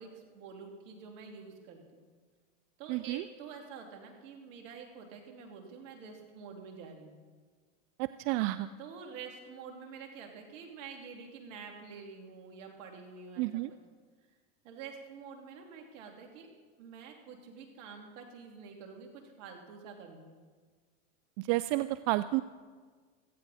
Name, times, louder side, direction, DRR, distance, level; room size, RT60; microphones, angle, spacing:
voice 1, 0.0-2.1 2.8-7.2 8.8-13.6 14.6-16.5 16.8-20.3, right 5 dB, 70° right, 2 dB, 2.8 m, -48 dB
voice 2, 2.9-3.2 8.0-8.7 13.4-13.7 21.4-22.4, right 18 dB, 55° right, 14 dB, 0.5 m, -31 dB
17.0 x 15.0 x 4.2 m, 1.5 s
hypercardioid pair, 105°, 39 cm